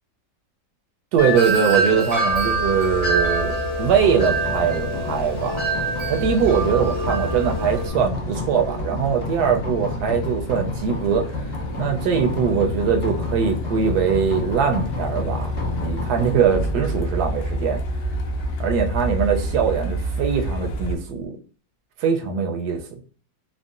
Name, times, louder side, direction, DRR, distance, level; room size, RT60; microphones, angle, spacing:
voice 1, 1.1-5.6 6.1-11.3 11.8-17.8 18.6-21.3 22.0-22.8, right 6 dB, 70° right, 1.0 m, -22 dB
Wind chime, 1.2-7.9, right 2 dB, 40° right, 0.4 m, -25 dB
Truck, 2.3-21.0, equal, 85° left, 1.3 m, -31 dB
sound 1, 4.0-21.2, left 1 dB, 20° left, 0.7 m, -32 dB
3.6 x 2.0 x 2.4 m
omnidirectional pair, 2.0 m